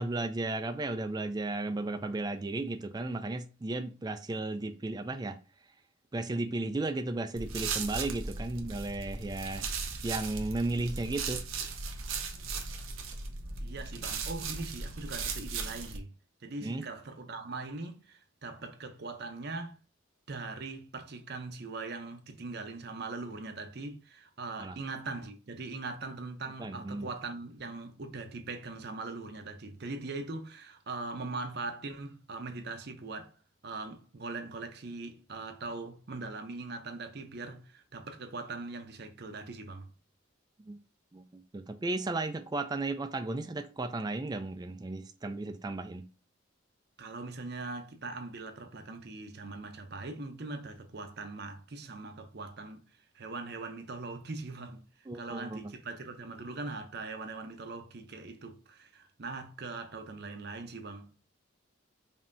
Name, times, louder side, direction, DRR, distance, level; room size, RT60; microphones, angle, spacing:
voice 1, 0.0-5.4 6.1-9.8 10.0-11.5 16.6-16.8 24.6-24.8 26.6-27.1 40.7-40.8 41.1-46.0 55.1-55.7, right 2 dB, 20° right, 0.3 m, -34 dB
sound 1, 7.4-16.0, right 4 dB, 90° right, 0.8 m, -37 dB
voice 2, 13.6-16.1 16.4-19.8 20.3-33.4 33.6-39.9 47.0-52.9 53.1-61.1, right 3 dB, 50° right, 0.7 m, -41 dB
5.3 x 2.8 x 2.6 m
head